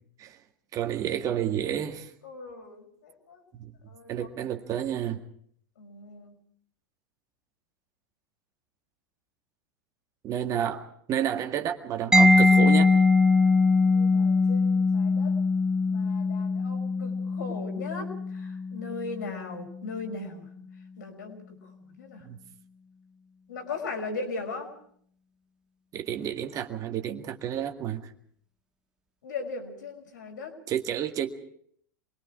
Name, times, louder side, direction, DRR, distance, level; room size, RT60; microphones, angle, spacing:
voice 1, 0.7-2.1 3.6-3.7 4.1-5.2 10.2-12.9 22.2-22.4 25.9-28.0 30.7-31.3, right 10 dB, 30° right, 1.9 m, -30 dB
voice 2, 2.2-3.4 3.9-4.3 5.8-6.3 13.8-15.4 15.9-20.5 21.0-21.6 22.0-22.2 23.5-24.7 29.2-30.6, left 3 dB, 65° left, 5.6 m, -38 dB
Mallet percussion, 12.1-19.7, left 3 dB, 5° right, 1.4 m, -22 dB
28.0 x 22.5 x 4.8 m
figure-of-eight pair, 85°, 11 cm